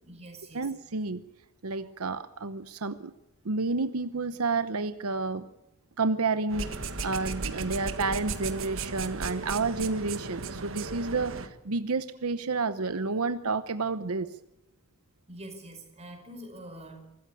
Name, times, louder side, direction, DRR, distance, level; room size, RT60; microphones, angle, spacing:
voice 1, 0.0-0.7 15.3-17.0, right 1 dB, 30° right, 4 dB, 5.2 m, -45 dB
voice 2, 0.5-1.2 1.6-3.1 3.4-5.5 6.0-6.7 7.0-14.3, right 3 dB, 85° right, 12 dB, 0.9 m, -30 dB
sound 1, 6.5-11.5, right 4 dB, 65° right, 1.6 m, -35 dB
24.0 x 14.0 x 8.3 m, 0.87 s
head